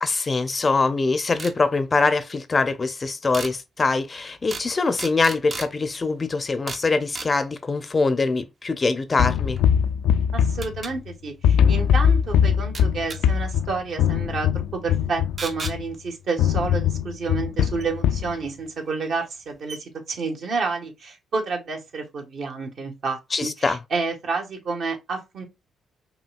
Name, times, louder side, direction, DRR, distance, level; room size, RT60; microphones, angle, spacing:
voice 1, 0.0-9.6 23.3-23.8, left 3 dB, 30° left, 0.5 m, -23 dB
sound 1, 1.4-1.6 3.3-3.5 4.5-4.7 5.0-5.7 6.7-6.9 7.1-7.3 9.6-9.7 10.6-10.9 12.7-13.2 15.4-15.8 17.8-17.9 18.9-19.0 19.3-19.4 19.7-19.8, right 4 dB, 40° right, 0.6 m, -34 dB
sound 2, 9.2-11.1 11.4-15.9 16.4-18.3, left 8 dB, 85° left, 0.3 m, -21 dB
voice 2, 10.3-25.4, right 4 dB, 65° right, 1.4 m, -30 dB
5.2 x 2.7 x 2.3 m
cardioid pair, 90°, 0 cm